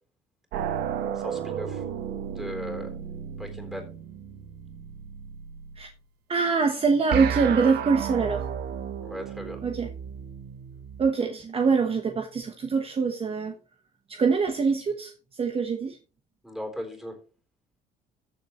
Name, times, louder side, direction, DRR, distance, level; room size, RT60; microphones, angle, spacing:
sound 1, 0.5-5.8 7.1-11.0, right 8 dB, 75° right, 1.3 m, -33 dB
voice 1, 1.1-1.8 2.4-2.9 3.4-3.9 9.0-9.6 16.4-17.2, left 1 dB, ahead, 3.7 m, -37 dB
voice 2, 6.3-8.5 9.6-9.9 11.0-13.5 14.1-16.0, right 5 dB, 35° right, 1.2 m, -24 dB
14.5 x 7.0 x 3.1 m
cardioid pair, 110°, 17 cm